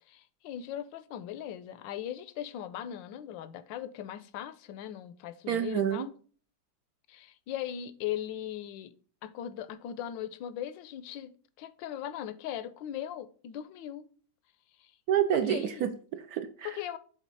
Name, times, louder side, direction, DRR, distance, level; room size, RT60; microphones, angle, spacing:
voice 1, 0.1-6.1 7.1-8.9 9.2-11.3 11.6-14.1 14.8-14.9 15.5-15.9 16.6-17.0, left 11 dB, 80° left, 1.3 m, -39 dB
voice 2, 5.5-6.1 15.1-16.8, right 9 dB, 75° right, 0.9 m, -29 dB
7.3 x 3.9 x 5.3 m
omnidirectional pair, 2.0 m